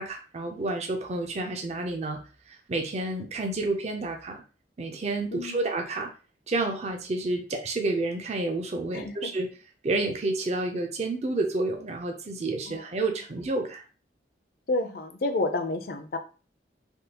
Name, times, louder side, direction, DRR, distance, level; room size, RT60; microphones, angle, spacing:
voice 1, 0.0-4.4 4.8-6.1 6.5-9.5 9.8-13.8, right 2 dB, 40° right, 4 dB, 0.5 m, -30 dB
voice 2, 5.3-5.6 8.9-9.3 12.7-12.9 14.7-16.2, left 2 dB, 55° left, 8 dB, 0.5 m, -30 dB
3.4 x 2.3 x 2.8 m, 0.34 s
head